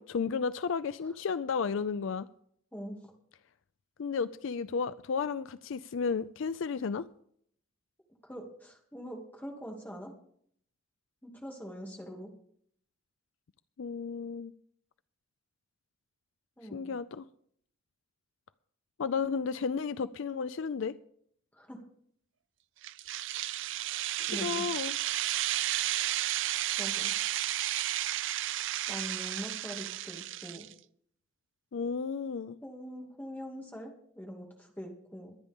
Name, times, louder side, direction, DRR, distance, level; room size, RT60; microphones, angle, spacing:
voice 1, 0.0-2.3 4.0-7.1 13.8-14.5 16.7-17.3 19.0-20.9 24.4-25.0 31.7-32.6, left 5 dB, 65° left, 14 dB, 0.4 m, -33 dB
voice 2, 8.2-10.1 11.2-12.3 16.6-17.0 21.5-21.8 24.3-24.6 26.0-26.1 26.7-27.1 28.9-30.7 32.6-35.4, equal, 10° left, -1 dB, 2.4 m, -43 dB
sound 1, 22.8-30.7, right 14 dB, 60° right, 0.4 m, -33 dB
23.0 x 9.7 x 3.6 m, 0.65 s
head